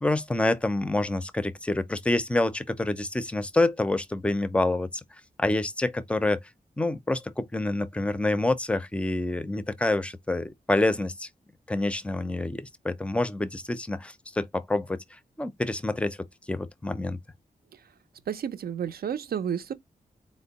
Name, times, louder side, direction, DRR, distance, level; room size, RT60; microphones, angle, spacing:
voice 1, 0.0-4.9 5.4-6.4 6.8-11.3 11.7-15.0 15.4-16.2 16.5-17.2, left 2 dB, 10° left, 0.4 m, -27 dB
voice 2, 18.3-19.7, right 8 dB, 85° right, 0.5 m, -31 dB
4.3 x 2.1 x 3.8 m
wide cardioid pair, 160°, 15 cm